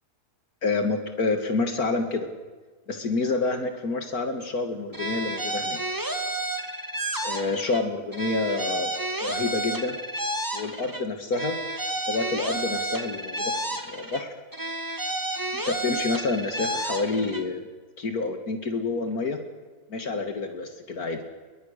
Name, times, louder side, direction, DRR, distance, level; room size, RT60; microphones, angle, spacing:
voice 1, 0.6-2.3 2.9-5.8 7.2-8.9 9.2-10.0 10.5-11.5 12.1-13.6 13.9-14.3 15.7-17.6 18.0-19.4 19.9-21.2, left 3 dB, 75° left, 6 dB, 2.4 m, -28 dB
sound 1, 4.9-7.8 8.1-11.0 11.3-14.2 14.5-17.4, right 1 dB, 15° right, 1.9 m, -31 dB
29.5 x 23.0 x 6.7 m, 1.3 s
omnidirectional pair, 1.6 m